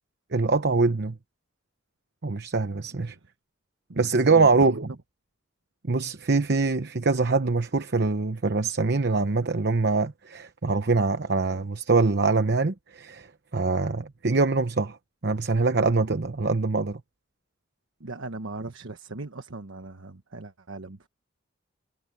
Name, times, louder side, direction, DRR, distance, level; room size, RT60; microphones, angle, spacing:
voice 1, 0.3-1.2 2.2-3.2 4.0-4.9 5.9-13.3 13.5-15.0 15.2-17.0, right 3 dB, 55° right, 0.9 m, -24 dB
voice 2, 3.9-4.8 18.0-21.1, right 2 dB, 90° right, 1.3 m, -39 dB
head